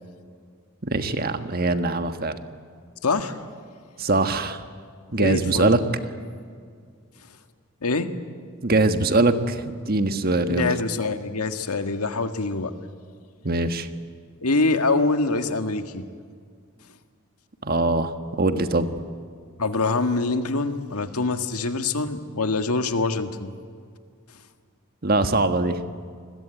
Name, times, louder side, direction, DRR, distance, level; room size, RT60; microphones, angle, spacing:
voice 1, 0.8-2.4 4.0-4.6 5.1-5.8 8.6-10.7 13.4-13.9 17.6-18.1 18.4-18.9 25.0-25.8, right 2 dB, 45° right, 8 dB, 1.5 m, -22 dB
voice 2, 3.0-3.3 5.1-5.8 7.8-8.1 10.5-12.7 14.4-16.0 19.6-23.5, left 3 dB, 90° left, 8 dB, 1.8 m, -24 dB
28.5 x 21.5 x 9.1 m, 2.1 s
head